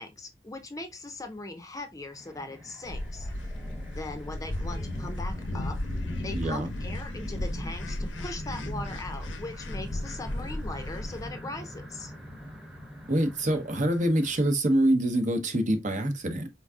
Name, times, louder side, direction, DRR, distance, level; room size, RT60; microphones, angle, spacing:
voice 1, 0.0-3.3 3.9-5.8 6.2-12.1, left 2 dB, 20° left, 0.6 m, -40 dB
sound 1, 2.1-14.5, equal, 5° right, 1.0 m, -43 dB
sound 2, 2.8-11.3, left 1 dB, 85° left, 0.7 m, -35 dB
voice 2, 6.3-6.7 13.1-16.5, right 1 dB, 45° right, 0.9 m, -25 dB
4.5 x 3.9 x 2.3 m
head